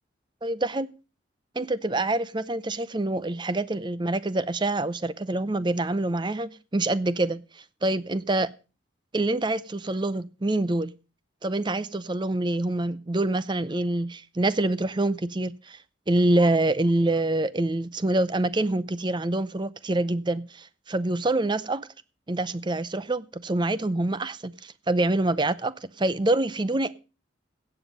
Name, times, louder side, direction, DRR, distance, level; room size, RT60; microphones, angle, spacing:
voice 1, 0.4-0.9 1.6-7.4 7.8-8.5 9.1-10.9 11.4-15.8 16.1-21.9 22.3-26.9, right 2 dB, 25° right, 0.6 m, -26 dB
16.5 x 8.0 x 5.1 m
head